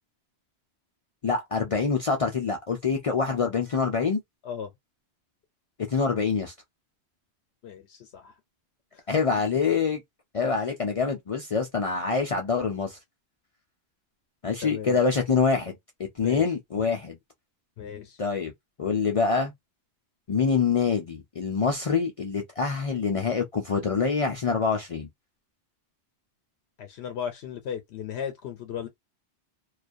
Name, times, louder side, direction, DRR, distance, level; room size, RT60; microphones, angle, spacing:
voice 1, 1.2-4.2 5.9-6.5 9.1-10.0 10.3-13.0 14.4-15.7 16.2-17.2 18.2-18.5 18.8-19.5 20.3-25.1, left 5 dB, 55° left, 0.3 m, -25 dB
voice 2, 7.6-8.3 8.9-9.0 9.3-9.4 14.6-15.0 16.2-16.4 17.8-18.2 26.8-28.9, left 8 dB, 80° left, 0.8 m, -36 dB
2.3 x 2.2 x 2.4 m
omnidirectional pair, 1.1 m